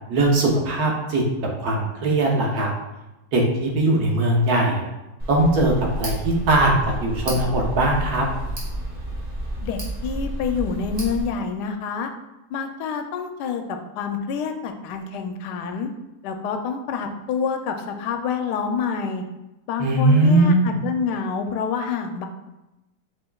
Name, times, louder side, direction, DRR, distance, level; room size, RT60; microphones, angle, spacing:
voice 1, 0.1-1.2 1.6-2.7 3.3-4.8 5.3-5.7 6.0-8.2 19.8-20.6, right 2 dB, 70° right, -1 dB, 1.4 m, -20 dB
Tick, 5.2-11.2, right 1 dB, 25° right, 1.3 m, -30 dB
voice 2, 9.6-12.1 12.5-15.9 16.2-19.2 19.7-22.3, left 6 dB, 80° left, 5 dB, 1.1 m, -27 dB
6.3 x 3.2 x 2.3 m, 0.97 s
omnidirectional pair, 1.8 m